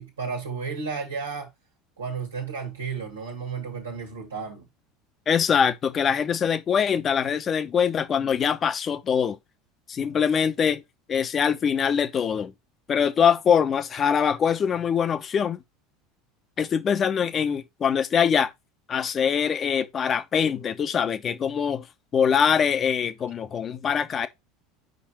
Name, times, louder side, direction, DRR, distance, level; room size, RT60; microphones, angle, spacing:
voice 1, 0.0-1.5 2.0-4.7, right 5 dB, 85° right, 1.7 m, -33 dB
voice 2, 5.3-9.4 9.9-10.8 11.1-12.5 12.9-15.6 16.6-18.5 18.9-21.9 22.1-24.3, left 7 dB, 35° left, 0.9 m, -23 dB
5.3 x 5.1 x 4.2 m
figure-of-eight pair, 75°, 0 cm